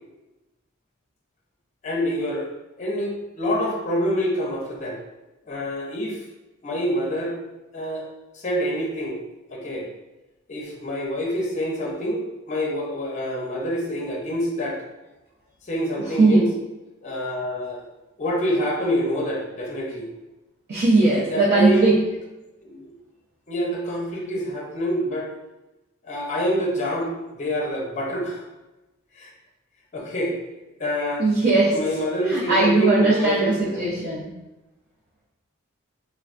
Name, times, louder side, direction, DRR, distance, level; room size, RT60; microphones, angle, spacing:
voice 1, 1.8-2.5 2.8-5.0 5.5-6.2 6.6-7.4 7.7-8.1 8.3-9.2 9.5-9.9 10.5-14.8 15.6-16.5 17.0-17.9 18.2-20.0 21.1-21.9 22.6-22.9 23.5-25.3 26.0-28.4 29.1-29.3 29.9-30.4 30.8-31.2 31.7-34.1, equal, 35° left, -2 dB, 0.6 m, -26 dB
voice 2, 20.7-21.9 31.2-31.7 32.3-34.3, right 3 dB, 50° right, -7 dB, 0.5 m, -19 dB
3.3 x 2.2 x 2.4 m, 1.0 s
head